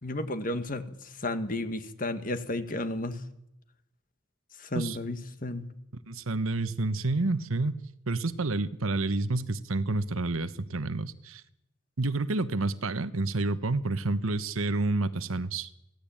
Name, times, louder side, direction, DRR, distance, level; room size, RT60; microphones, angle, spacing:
voice 1, 0.0-3.2 4.6-5.7, left 1 dB, 40° left, 1.7 m, -33 dB
voice 2, 6.1-7.8 8.1-11.4 12.0-15.7, right 2 dB, 85° right, 1.1 m, -29 dB
24.0 x 16.5 x 8.8 m
head